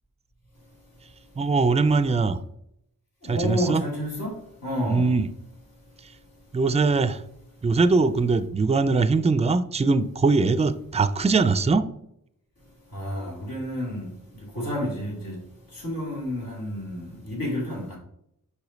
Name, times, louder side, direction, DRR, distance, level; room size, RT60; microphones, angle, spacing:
voice 1, 1.4-2.4 3.2-3.8 4.9-5.3 6.0-6.1 6.5-7.2 7.6-11.9, right 4 dB, 20° right, 13 dB, 0.3 m, -21 dB
voice 2, 3.2-4.3 4.6-5.2 12.9-14.1 14.5-15.4 15.8-18.0, equal, 80° left, -3 dB, 2.3 m, -30 dB
5.1 x 5.0 x 3.9 m, 0.75 s
wide cardioid pair, 95°, 34 cm